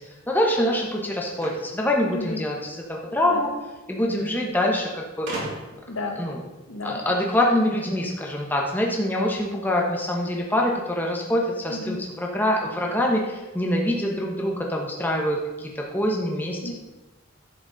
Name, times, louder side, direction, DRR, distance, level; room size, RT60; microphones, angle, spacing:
voice 1, 0.3-3.5 3.9-5.3 6.2-6.4 6.8-16.6, left 1 dB, 10° left, -1 dB, 1.0 m, -25 dB
sound 1, 1.3-2.8 3.9-4.0 4.2-4.3 5.3-5.9, right 1 dB, 55° right, 2.9 m, -35 dB
voice 2, 2.1-2.4 3.2-3.5 4.1-4.4 5.9-6.2 6.7-7.0 11.7-12.0 16.6-16.7, left 2 dB, 70° left, 3 dB, 1.4 m, -32 dB
11.0 x 8.0 x 4.0 m, 1.1 s
head